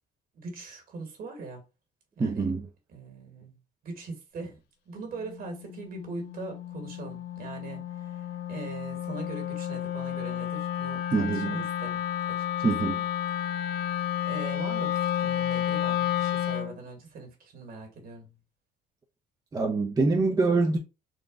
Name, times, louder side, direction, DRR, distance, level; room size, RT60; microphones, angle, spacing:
voice 1, 0.3-1.6 2.2-2.5 2.9-3.5 3.8-4.6 4.8-12.0 12.6-12.7 14.3-18.3, right 4 dB, 60° right, 1.7 m, -41 dB
voice 2, 2.2-2.7 11.1-11.6 12.6-13.0 19.5-20.8, right 3 dB, 20° right, 0.6 m, -25 dB
Wind instrument woodwind instrument, 5.2-16.8, left 11 dB, 75° left, 0.4 m, -31 dB
3.9 x 2.2 x 3.6 m
cardioid pair, 110°, 17 cm